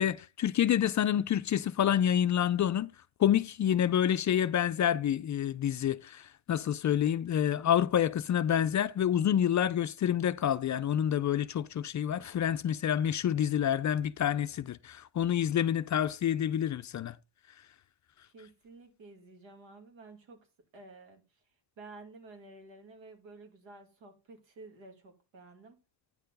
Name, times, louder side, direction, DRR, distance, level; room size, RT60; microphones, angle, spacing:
voice 1, 0.0-2.9 3.2-17.1, left 10 dB, 40° left, 0.4 m, -28 dB
voice 2, 18.3-20.4 20.7-21.2 21.8-25.8, right 3 dB, 80° right, 2.5 m, -52 dB
9.6 x 4.5 x 5.2 m
cardioid pair, 130°, 45 cm